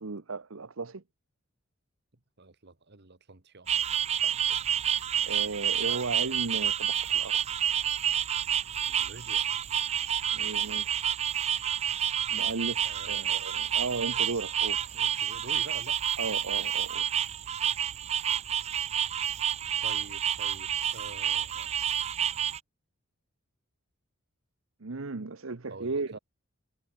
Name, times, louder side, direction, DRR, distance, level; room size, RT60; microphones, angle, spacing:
voice 1, 0.0-1.0 4.2-4.4 5.2-7.4 10.3-11.0 12.3-15.0 16.2-17.2 24.8-26.2, right 3 dB, 75° right, 1.0 m, -35 dB
voice 2, 2.4-3.7 8.5-9.5 12.8-13.5 14.9-16.0 19.8-21.7 25.7-26.2, right 3 dB, 55° right, 1.8 m, -47 dB
sound 1, 3.7-22.6, right 9 dB, 30° right, 0.4 m, -29 dB
head